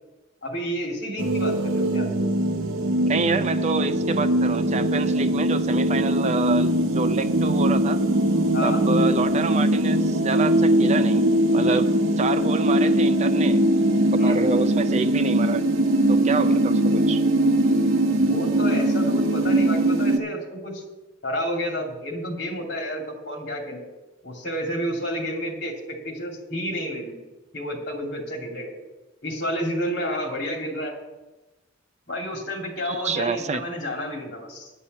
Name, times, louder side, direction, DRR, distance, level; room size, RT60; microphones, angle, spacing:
voice 1, 0.4-2.1 8.5-8.8 14.2-14.4 18.1-20.8 21.2-23.8 24.2-27.1 27.5-28.7 29.2-31.0 32.1-34.7, equal, 60° left, 0 dB, 2.6 m, -30 dB
sound 1, 1.2-20.2, right 1 dB, 85° right, 0.9 m, -21 dB
voice 2, 3.1-8.0 8.6-11.2 11.5-13.6 14.2-15.7 16.1-17.2 32.8-33.6, right 4 dB, 35° right, 11 dB, 0.4 m, -28 dB
10.0 x 5.5 x 8.2 m, 1.1 s
head